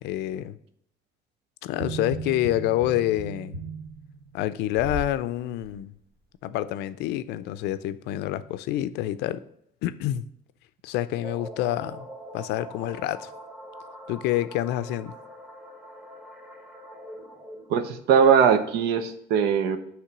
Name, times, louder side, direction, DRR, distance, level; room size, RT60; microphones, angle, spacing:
voice 1, 0.0-0.6 1.6-3.6 4.3-5.9 6.4-9.4 9.8-10.2 10.8-12.1 12.3-13.3 14.1-15.1, left 13 dB, 90° left, 0.4 m, -27 dB
sound 1, 1.7-5.2 5.6-5.8, right 4 dB, 60° right, 1.0 m, -36 dB
sound 2, 11.2-17.9, right 1 dB, 5° right, 1.1 m, -43 dB
voice 2, 17.7-19.8, right 7 dB, 85° right, 0.7 m, -20 dB
8.3 x 3.2 x 6.0 m
cardioid pair, 110°, 17 cm